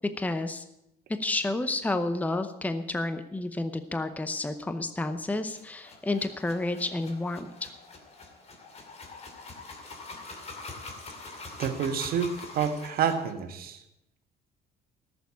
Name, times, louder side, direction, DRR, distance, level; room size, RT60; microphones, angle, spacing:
voice 1, 0.2-0.6 1.1-7.7, left 2 dB, 10° left, 9 dB, 0.8 m, -30 dB
sound 1, 5.4-13.3, left 3 dB, 40° left, 2.5 m, -44 dB
voice 2, 11.6-13.8, right 7 dB, 65° right, 7 dB, 1.5 m, -28 dB
13.5 x 7.0 x 8.3 m, 0.85 s
cardioid pair, 110°, 17 cm